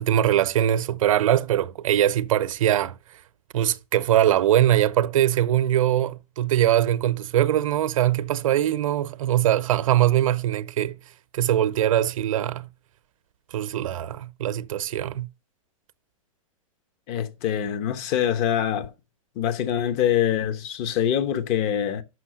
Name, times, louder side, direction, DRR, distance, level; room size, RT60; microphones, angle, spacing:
voice 1, 0.0-3.0 3.5-11.0 11.3-12.7 13.5-15.3, right 12 dB, 70° right, 0.6 m, -22 dB
voice 2, 17.1-18.9 19.4-22.0, left 10 dB, 45° left, 1.0 m, -24 dB
6.2 x 5.6 x 6.4 m
hypercardioid pair, 115°, 18 cm